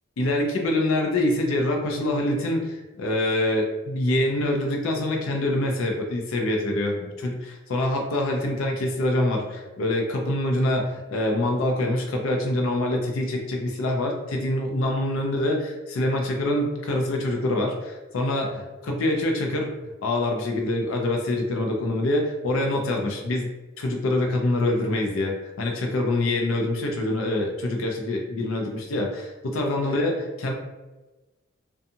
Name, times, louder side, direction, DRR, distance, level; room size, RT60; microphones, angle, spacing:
voice 1, 0.2-19.7 20.0-23.5 23.8-30.5, left 1 dB, 75° left, 1 dB, 0.4 m, -25 dB
2.6 x 2.3 x 2.6 m, 1.1 s
head